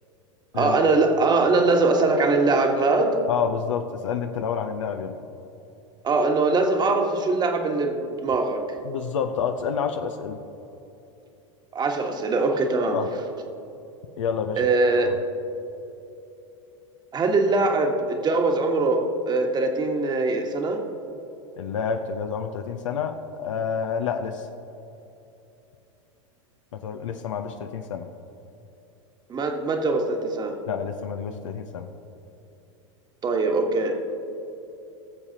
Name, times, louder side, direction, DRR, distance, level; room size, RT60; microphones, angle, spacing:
voice 1, 0.5-3.2 6.0-8.6 11.7-13.0 14.6-15.1 17.1-20.8 29.3-30.6 33.2-34.0, right 3 dB, 25° right, 4 dB, 1.3 m, -22 dB
voice 2, 3.3-5.2 8.8-10.4 12.9-13.1 14.2-14.6 15.0-15.2 21.6-24.5 26.7-28.1 30.7-31.9, left 7 dB, 75° left, 6 dB, 0.7 m, -29 dB
20.5 x 7.1 x 2.8 m, 2.9 s
hypercardioid pair, 95°, 17 cm